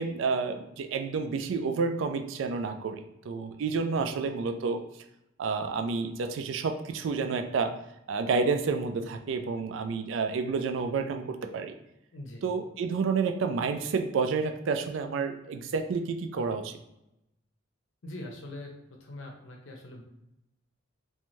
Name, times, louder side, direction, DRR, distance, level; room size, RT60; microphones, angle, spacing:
voice 1, 0.0-4.8 5.4-7.7 8.1-11.7 12.4-16.8, right 4 dB, 70° right, 7 dB, 0.3 m, -30 dB
voice 2, 12.1-12.4 18.0-20.0, left 1 dB, 70° left, 1 dB, 0.6 m, -43 dB
2.6 x 2.2 x 3.0 m, 0.87 s
head